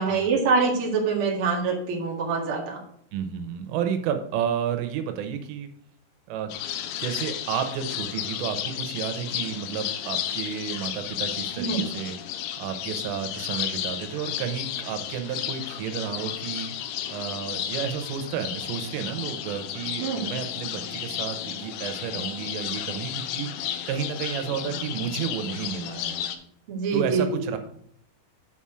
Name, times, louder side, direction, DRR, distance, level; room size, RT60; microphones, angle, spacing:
voice 1, 0.0-2.8 11.6-11.8 20.0-20.2 26.7-27.5, right 4 dB, 55° right, -2 dB, 1.5 m, -25 dB
voice 2, 3.1-5.7 6.3-6.5 7.0-26.2 26.9-27.6, right 8 dB, 85° right, 7 dB, 3.6 m, -31 dB
sound 1, 6.5-26.4, left 10 dB, 85° left, 3.1 m, -33 dB
8.2 x 5.7 x 4.8 m, 0.68 s
omnidirectional pair, 5.6 m